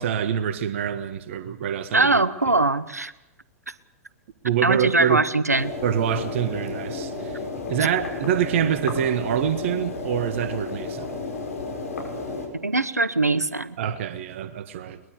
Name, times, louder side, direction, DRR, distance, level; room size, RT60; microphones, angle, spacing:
voice 1, 0.0-2.2 4.4-5.2 5.8-7.4 7.7-11.1 13.8-15.0, right 9 dB, 50° right, 1.5 m, -25 dB
voice 2, 1.9-3.1 4.6-5.7 12.5-13.8, right 2 dB, 85° right, 1.1 m, -21 dB
sound 1, 5.5-12.5, left 3 dB, 65° left, 6.4 m, -32 dB
23.0 x 21.0 x 6.6 m
figure-of-eight pair, 100°, 8 cm